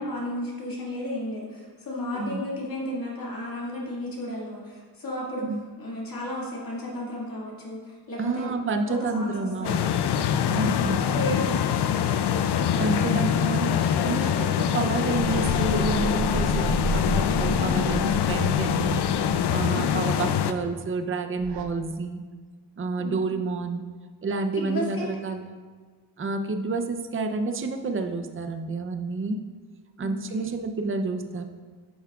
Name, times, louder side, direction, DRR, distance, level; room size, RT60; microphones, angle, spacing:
voice 1, 0.0-5.4 5.8-7.8 8.1-8.5 8.9-9.9 10.7-12.1 19.7-20.0 23.0-23.2 24.6-25.1 30.0-30.5, left 1 dB, 55° left, -5 dB, 2.1 m, -33 dB
voice 2, 8.2-9.9 10.5-11.1 12.8-19.1 19.5-22.2 22.8-23.8 24.2-25.6 26.2-29.4 30.0-31.4, right 3 dB, 30° right, 6 dB, 0.6 m, -29 dB
sound 1, 9.6-20.5, left 8 dB, 70° left, 0.5 m, -24 dB
sound 2, 15.2-20.1 21.4-21.6, right 4 dB, 80° right, 0.8 m, -33 dB
9.5 x 7.1 x 2.4 m, 1.5 s
cardioid pair, 90°, 42 cm